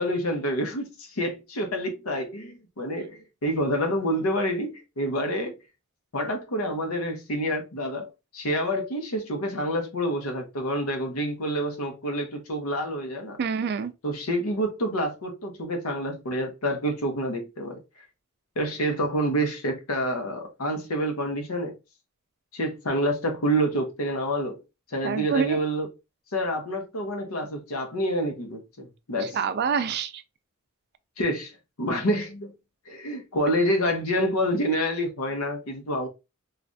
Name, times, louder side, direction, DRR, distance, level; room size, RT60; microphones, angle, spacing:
voice 1, 0.0-5.5 6.1-13.4 14.0-17.8 18.6-21.8 22.5-24.6 24.9-25.9 26.3-29.4 31.2-32.5 32.9-36.1, equal, 80° left, 0.8 m, -28 dB
voice 2, 13.4-13.9 25.0-25.6 29.2-30.2, right 5 dB, 50° right, 0.3 m, -26 dB
3.3 x 2.4 x 2.6 m
head